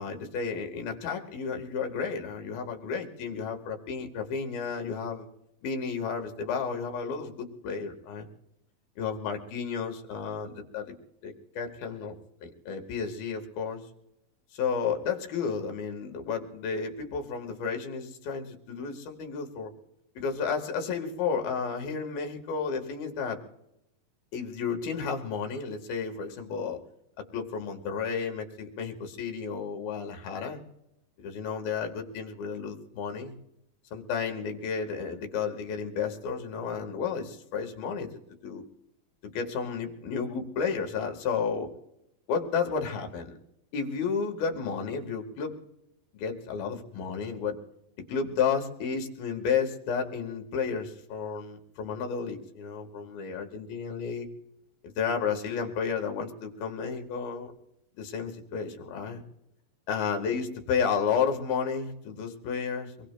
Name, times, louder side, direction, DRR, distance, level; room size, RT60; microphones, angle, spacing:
voice 1, 0.0-5.3 5.6-8.3 9.0-10.9 11.2-12.1 12.4-13.8 14.5-19.7 20.2-23.4 24.3-26.8 27.3-30.6 31.2-33.3 33.9-38.1 38.4-38.6 39.2-41.7 42.3-43.4 43.7-45.5 46.1-47.6 48.1-54.3 54.8-57.5 58.0-59.2 59.9-63.1, left 6 dB, 80° left, 4 dB, 3.4 m, -32 dB
24.5 x 22.0 x 2.2 m, 0.82 s
omnidirectional pair, 4.2 m